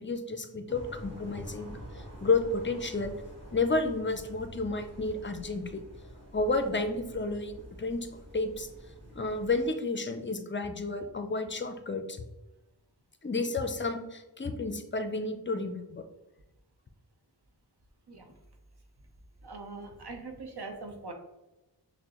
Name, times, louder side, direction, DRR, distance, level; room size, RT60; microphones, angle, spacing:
voice 1, 0.0-3.1 3.5-5.8 6.3-8.1 8.3-8.7 9.1-12.2 13.2-16.0, left 3 dB, 30° left, 7 dB, 0.4 m, -31 dB
sound 1, 0.7-9.6, equal, 25° right, 1.4 m, -47 dB
voice 2, 19.4-21.1, right 3 dB, 60° right, 3 dB, 0.7 m, -42 dB
5.9 x 2.1 x 2.9 m, 0.99 s
wide cardioid pair, 50°, 43 cm